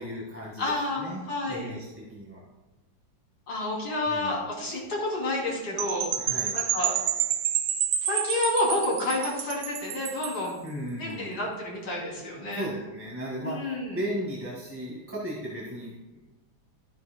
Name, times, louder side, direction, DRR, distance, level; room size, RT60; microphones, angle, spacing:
voice 1, 0.0-2.5 4.1-4.4 6.2-6.6 10.6-11.4 12.3-16.3, equal, 5° right, -5 dB, 1.4 m, -36 dB
voice 2, 0.6-1.7 3.5-6.1 6.5-6.9 8.0-10.6 11.0-12.7 13.4-14.0, left 2 dB, 70° left, -4 dB, 3.7 m, -29 dB
Percussion / Wind chime, 5.8-10.5, right 10 dB, 80° right, 1.4 m, -29 dB
13.0 x 9.6 x 2.2 m, 1.1 s
omnidirectional pair, 2.1 m